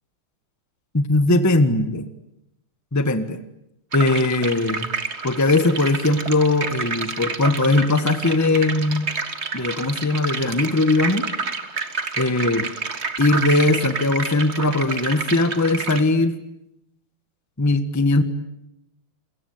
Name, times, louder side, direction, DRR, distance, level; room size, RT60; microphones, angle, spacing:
voice 1, 0.9-2.1 2.9-3.4 3.9-4.9 5.2-9.1 9.5-11.2 12.2-12.7 13.2-16.3 17.6-18.2, left 2 dB, 10° left, 10 dB, 1.1 m, -20 dB
sound 1, 3.9-16.0, right 4 dB, 30° right, 1.9 m, -29 dB
27.5 x 22.5 x 9.4 m, 0.83 s
omnidirectional pair, 2.4 m